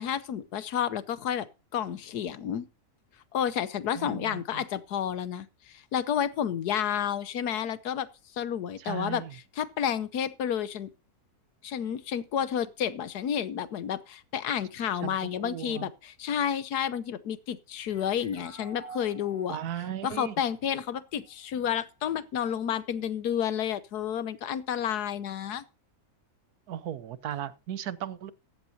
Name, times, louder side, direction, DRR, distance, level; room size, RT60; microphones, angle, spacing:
voice 1, 0.0-1.5 1.7-2.7 3.3-8.1 8.3-9.2 9.6-10.9 11.6-19.6 20.0-25.6, left 9 dB, 90° left, 1.5 m, -30 dB
voice 2, 3.9-4.6 8.8-9.4 15.0-15.9 19.5-20.4 26.7-28.3, right 10 dB, 80° right, 1.4 m, -36 dB
sound 1, 17.9-21.3, right 2 dB, 55° left, 3.5 m, -49 dB
14.5 x 11.5 x 2.8 m
omnidirectional pair, 1.6 m